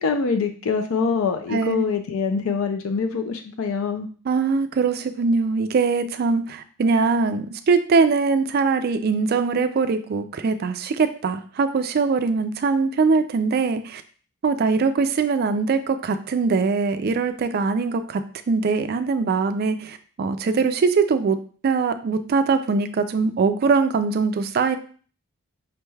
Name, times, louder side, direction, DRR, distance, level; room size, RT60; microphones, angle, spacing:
voice 1, 0.0-4.1, left 5 dB, 70° left, 6 dB, 0.4 m, -24 dB
voice 2, 1.5-1.9 4.3-14.0 14.4-18.2 18.5-21.4 21.6-24.8, right 4 dB, 45° right, 9 dB, 0.3 m, -22 dB
5.1 x 3.2 x 2.3 m, 0.42 s
head